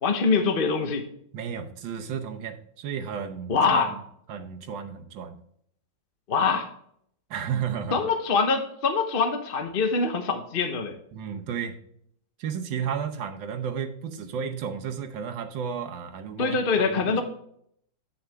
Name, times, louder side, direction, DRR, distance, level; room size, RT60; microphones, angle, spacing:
voice 1, 0.0-1.1 3.5-4.0 6.3-6.7 7.9-10.9 16.4-17.2, left 4 dB, 40° left, 6 dB, 0.9 m, -24 dB
voice 2, 1.3-4.0 4.3-5.4 7.3-8.0 11.1-11.8 12.4-17.2, right 7 dB, 85° right, 6 dB, 1.6 m, -33 dB
9.4 x 6.5 x 3.4 m, 0.67 s
omnidirectional pair, 2.0 m